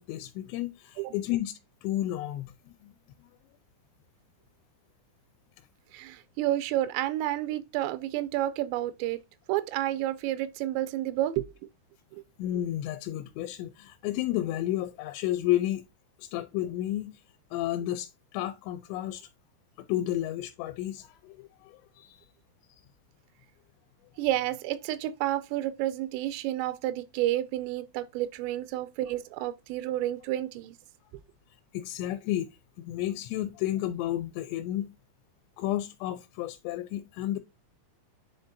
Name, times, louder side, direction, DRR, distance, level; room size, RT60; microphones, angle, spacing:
voice 1, 0.0-2.5 2.8-2.9 12.4-15.8 16.2-17.1 17.5-19.3 19.8-22.2 31.7-32.5 32.8-34.9 35.6-37.4, left 13 dB, 85° left, 2.8 m, -32 dB
voice 2, 5.9-9.2 9.5-11.5 12.1-12.2 24.2-30.8, right 14 dB, 90° right, 2.8 m, -30 dB
10.0 x 3.7 x 2.7 m
omnidirectional pair, 5.0 m